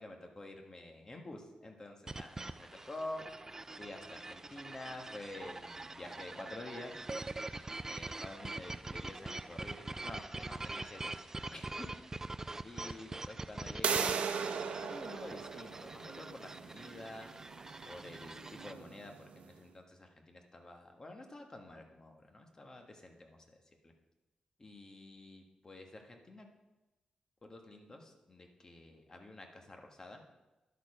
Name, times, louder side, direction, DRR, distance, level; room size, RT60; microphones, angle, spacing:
voice 1, 0.0-3.2 3.8-6.9 7.9-12.0 12.6-14.1 14.4-17.3 17.8-23.6 23.8-23.9 24.6-26.5 27.4-30.2, left 2 dB, 30° left, 3 dB, 1.4 m, -49 dB
sound 1, 2.1-18.7, right 2 dB, 20° right, 0.4 m, -44 dB
sound 2, 13.8-19.4, right 6 dB, 85° right, 0.7 m, -38 dB
11.0 x 6.7 x 4.9 m, 1.1 s
cardioid pair, 95°, 2 cm